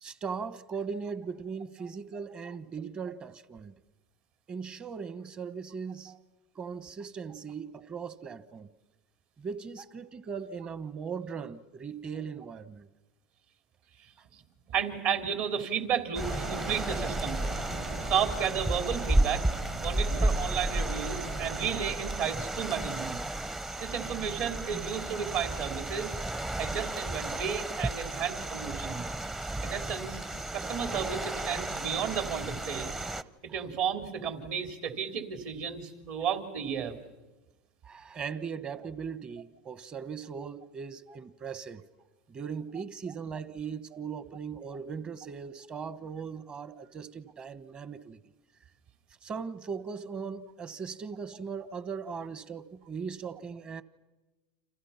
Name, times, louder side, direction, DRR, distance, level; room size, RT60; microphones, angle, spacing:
voice 1, 0.0-3.7 4.5-6.1 6.5-8.7 9.4-12.9 37.8-41.9 42.3-48.2 49.2-53.8, right 6 dB, 30° right, 1.2 m, -39 dB
voice 2, 14.7-17.4 18.1-19.4 19.8-23.2 23.8-26.1 26.6-29.0 29.6-30.2 30.5-32.9 33.4-37.0, right 7 dB, 60° right, 3.4 m, -33 dB
sound 1, 16.1-33.2, right 1 dB, 10° right, 0.8 m, -33 dB
sound 2, 16.2-21.9, right 3 dB, 90° right, 5.5 m, -41 dB
29.5 x 27.5 x 5.9 m
supercardioid pair, 115°, 4 cm